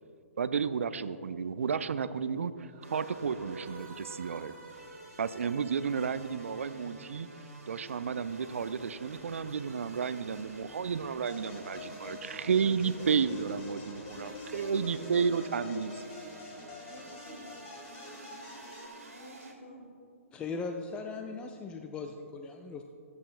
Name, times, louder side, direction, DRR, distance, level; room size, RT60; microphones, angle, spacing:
voice 1, 0.4-4.5 5.2-7.3 7.7-15.9, right 6 dB, 65° right, 14 dB, 0.4 m, -32 dB
sound 1, 2.6-5.3, right 5 dB, 30° right, 2.0 m, -54 dB
sound 2, 2.8-19.5, right 2 dB, 80° right, 1.9 m, -50 dB
sound 3, 11.2-18.9, left 2 dB, 35° left, 1.7 m, -47 dB
voice 2, 14.1-15.4 16.9-17.5 19.1-19.9, left 1 dB, 55° left, 0 dB, 2.4 m, -48 dB
voice 3, 20.3-22.8, left 4 dB, 10° left, 4 dB, 0.4 m, -38 dB
18.5 x 8.2 x 2.3 m, 2.5 s
figure-of-eight pair, 125°, 8 cm